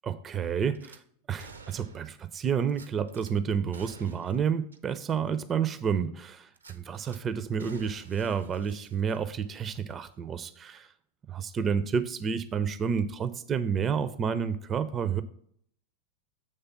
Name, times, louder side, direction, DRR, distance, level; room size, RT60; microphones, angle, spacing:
voice 1, 0.0-1.0 1.3-10.9 11.3-15.2, right 7 dB, 25° right, 13 dB, 0.4 m, -30 dB
Gunshot gunfire / Glass, 0.7-1.0 1.4-2.2 2.7-3.3 3.7-4.4 4.7-4.8 5.3-5.4 6.5-7.2 7.6-9.4 9.7-9.9, right 4 dB, 75° right, 0.5 m, -51 dB
7.8 x 3.3 x 5.6 m, 0.64 s
figure-of-eight pair, 90°, 0 cm